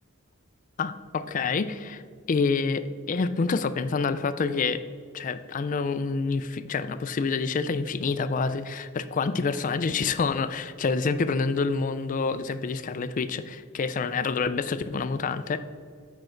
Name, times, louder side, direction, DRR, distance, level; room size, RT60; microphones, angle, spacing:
voice 1, 0.8-2.0 2.3-4.8 5.1-15.6, left 4 dB, 35° left, 12 dB, 0.3 m, -27 dB
7.7 x 6.2 x 4.4 m, 2.2 s
head